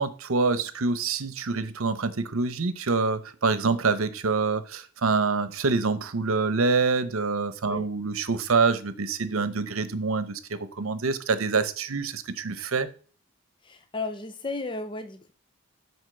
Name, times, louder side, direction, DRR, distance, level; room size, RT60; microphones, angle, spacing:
voice 1, 0.0-12.9, right 4 dB, 75° right, 0.9 m, -26 dB
voice 2, 13.6-15.3, left 3 dB, 20° left, 0.5 m, -34 dB
8.0 x 4.6 x 6.7 m
head